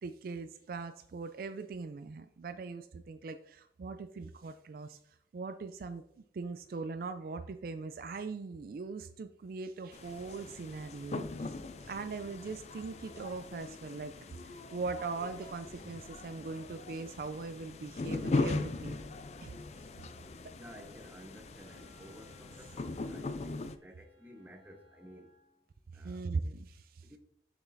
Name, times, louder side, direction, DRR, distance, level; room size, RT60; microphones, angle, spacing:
voice 1, 0.0-5.0 5.3-6.0 6.3-14.2 14.4-19.0 19.4-19.5 25.9-27.1, right 4 dB, 50° right, 0.3 m, -40 dB
sound 1, 9.9-23.8, left 3 dB, 35° left, 0.3 m, -40 dB
sound 2, 15.7-16.3 17.0-17.2 17.6-17.7 18.5-19.7 20.2-20.5 20.9-21.2 21.6-21.9 22.2-22.3 22.8-23.6, equal, 85° left, 1.9 m, -64 dB
voice 2, 20.5-25.3 25.9-26.2 27.0-27.2, equal, 10° right, 0.7 m, -53 dB
Wind instrument woodwind instrument, 20.9-25.7, left 1 dB, 30° right, 2.4 m, -66 dB
6.9 x 6.1 x 2.6 m
head